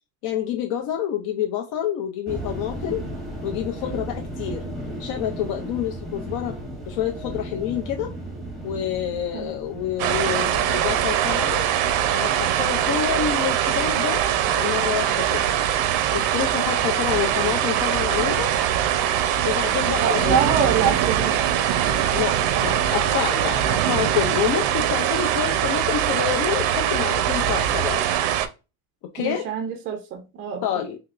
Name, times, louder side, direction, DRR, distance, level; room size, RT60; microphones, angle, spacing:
voice 1, 0.2-3.0 3.4-4.6 5.0-6.6 6.9-8.1 8.6-11.7 12.1-14.2 14.5-15.5 16.1-18.6 19.4-20.3 22.1-28.0 29.1-29.5 30.6-31.0, left 10 dB, 55° left, 0.5 m, -28 dB
sound 1, 2.2-11.9, right 1 dB, ahead, 0.8 m, -35 dB
sound 2, 10.0-28.5, right 10 dB, 85° right, 0.6 m, -22 dB
voice 2, 20.0-21.4 29.2-30.6, right 7 dB, 30° right, 0.4 m, -25 dB
3.5 x 2.8 x 2.3 m
cardioid pair, 160°, 46 cm